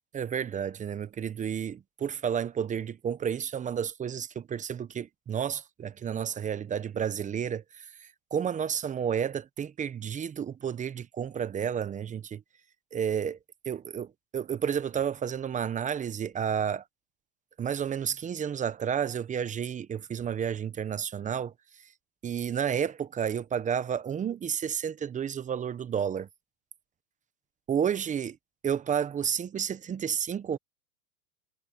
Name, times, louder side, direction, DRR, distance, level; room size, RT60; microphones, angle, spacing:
voice 1, 0.1-12.4 12.9-13.4 13.6-16.8 17.6-21.5 22.2-26.3 27.7-28.4 28.6-30.6, right 8 dB, 15° right, 1.0 m, -31 dB
hypercardioid pair, 125°, 46 cm